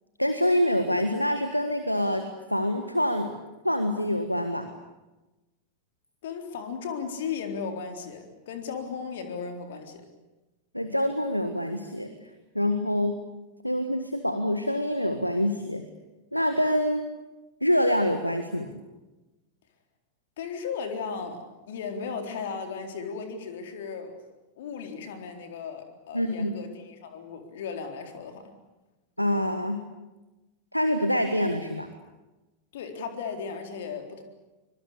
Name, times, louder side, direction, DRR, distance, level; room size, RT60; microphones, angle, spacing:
voice 1, 0.2-2.2 2.5-3.3 3.6-4.7 10.7-12.1 12.5-13.2 13.6-15.8 16.3-17.0 17.6-18.7 26.1-26.6 29.2-29.8 30.7-31.9, equal, 90° left, 8 dB, 1.7 m, -26 dB
voice 2, 6.2-10.0 20.4-24.2 24.6-28.5 32.7-34.2, left 6 dB, 55° left, 5 dB, 3.9 m, -36 dB
24.5 x 23.5 x 8.5 m, 1.1 s
figure-of-eight pair, 90°, 0 cm